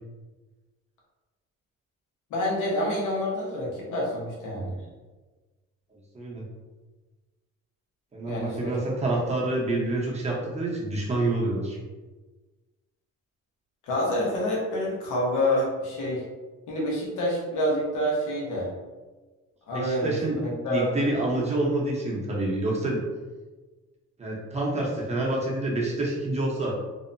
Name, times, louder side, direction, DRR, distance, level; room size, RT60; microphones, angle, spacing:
voice 1, 2.3-4.8 8.3-8.8 13.8-16.2 16.7-18.7 19.7-21.0, left 1 dB, 85° left, -4 dB, 0.9 m, -27 dB
voice 2, 8.1-11.8 19.7-23.0 24.2-26.8, right 2 dB, 20° right, -4 dB, 0.8 m, -27 dB
2.7 x 2.1 x 2.5 m, 1.3 s
cardioid pair, 90°, 30 cm